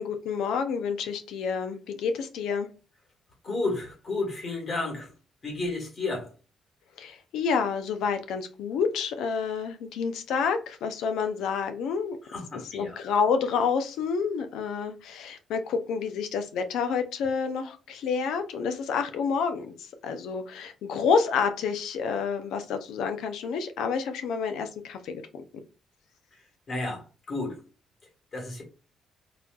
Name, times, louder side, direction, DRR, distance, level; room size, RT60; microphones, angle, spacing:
voice 1, 0.0-2.7 7.0-12.2 12.7-25.4, left 6 dB, 85° left, 0.4 m, -29 dB
voice 2, 3.4-5.1 5.4-6.3 12.2-13.0 26.3-27.6 28.3-28.6, left 2 dB, 45° left, 1.4 m, -32 dB
4.1 x 2.3 x 2.3 m
cardioid pair, 90°, 0 cm